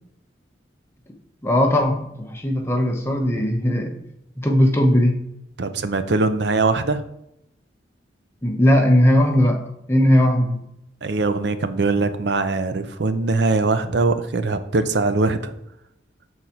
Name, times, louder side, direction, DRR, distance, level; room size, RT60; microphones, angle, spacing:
voice 1, 1.4-4.0 4.4-5.2 8.4-9.6 9.9-10.6, left 1 dB, 15° left, 2 dB, 0.8 m, -18 dB
voice 2, 5.6-7.0 11.0-15.5, right 3 dB, 65° right, 10 dB, 0.5 m, -21 dB
6.1 x 4.0 x 4.4 m, 0.81 s
head